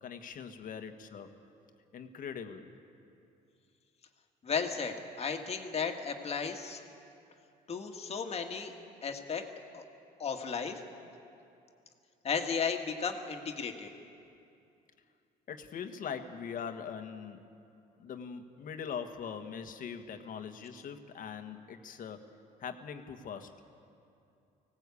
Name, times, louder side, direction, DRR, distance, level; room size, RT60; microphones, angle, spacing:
voice 1, 0.0-1.3 1.9-2.7 15.5-17.4 18.0-22.3 22.6-23.5, left 7 dB, 55° left, 7 dB, 1.5 m, -42 dB
voice 2, 4.4-6.8 7.7-8.7 9.0-9.4 9.7-9.8 10.2-10.8 12.2-13.9, left 6 dB, 40° left, 4 dB, 1.9 m, -34 dB
20.0 x 17.5 x 8.4 m, 2.6 s
cardioid pair, 110°, 17 cm